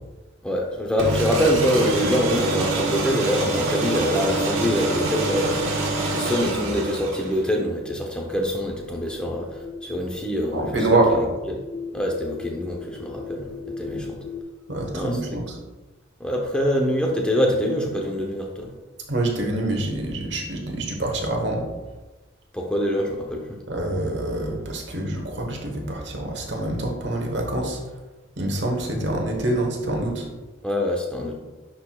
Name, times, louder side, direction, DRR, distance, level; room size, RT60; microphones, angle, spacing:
voice 1, 0.4-9.5 9.8-13.5 13.8-14.2 14.9-15.2 16.2-18.7 22.5-23.6 30.6-31.4, equal, 5° left, 0 dB, 0.8 m, -25 dB
sound 1, 1.0-7.5, right 2 dB, 90° right, 1.2 m, -25 dB
voice 2, 1.8-2.1 10.5-11.2 14.7-15.6 19.1-21.7 23.7-27.8 28.4-30.3, right 1 dB, 65° right, 2 dB, 1.2 m, -25 dB
sound 2, 8.7-14.4, left 4 dB, 30° left, 0.4 m, -38 dB
9.9 x 4.5 x 2.3 m, 1.2 s
head